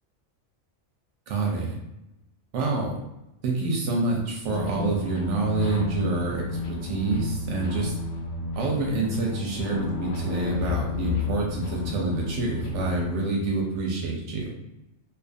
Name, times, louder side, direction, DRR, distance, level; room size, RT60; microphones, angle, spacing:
voice 1, 1.3-1.8 2.5-3.0 3.4-7.9 8.6-14.5, right 3 dB, 80° right, -1 dB, 0.9 m, -27 dB
sound 1, 4.4-13.1, left 4 dB, 90° left, 1.0 m, -31 dB
2.5 x 2.4 x 2.4 m, 0.92 s
omnidirectional pair, 1.2 m